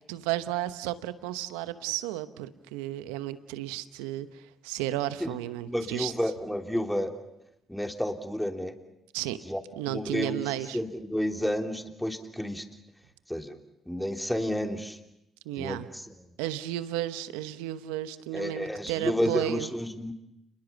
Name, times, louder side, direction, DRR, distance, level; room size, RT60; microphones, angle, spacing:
voice 1, 0.1-6.1 9.1-9.4 9.8-10.8 15.4-15.9 16.4-19.7, right 14 dB, 85° right, 13 dB, 1.0 m, -33 dB
voice 2, 5.6-7.1 7.7-8.7 9.4-9.6 9.9-10.4 10.7-12.6 13.3-13.6 13.9-15.0 15.6-16.0 18.3-20.1, equal, 5° left, 5 dB, 3.2 m, -31 dB
29.5 x 21.5 x 7.2 m, 0.85 s
hypercardioid pair, 50°, 0 cm